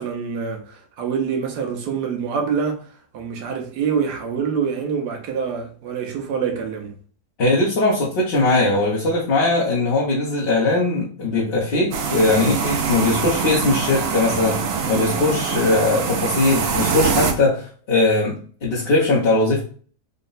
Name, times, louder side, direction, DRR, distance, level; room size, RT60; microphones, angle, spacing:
voice 1, 0.0-2.9 3.1-6.9 14.8-15.1, right 6 dB, 85° right, 1.4 m, -26 dB
voice 2, 7.4-14.6 14.9-19.6, left 2 dB, 45° left, 1.0 m, -20 dB
sound 1, 11.9-17.3, right 6 dB, 65° right, 0.6 m, -24 dB
4.0 x 2.2 x 3.8 m
omnidirectional pair, 1.7 m